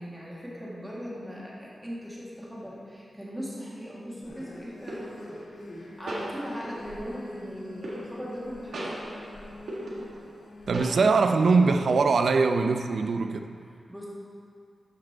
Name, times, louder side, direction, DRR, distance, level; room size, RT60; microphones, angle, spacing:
voice 1, 0.0-9.0 13.6-14.1, equal, 5° right, -6 dB, 1.8 m, -39 dB
sound 1, 3.3-3.5 4.9-5.4 6.1-7.0 7.8-8.4 8.7-10.4 10.7-11.3 11.6-12.2, right 1 dB, 90° right, 1.4 m, -38 dB
sound 2, 4.2-11.0, left 1 dB, 70° left, 1.6 m, -46 dB
voice 2, 10.7-13.5, right 4 dB, 70° right, 7 dB, 0.5 m, -22 dB
12.5 x 5.2 x 4.4 m, 2.4 s
wide cardioid pair, 150°, 0 cm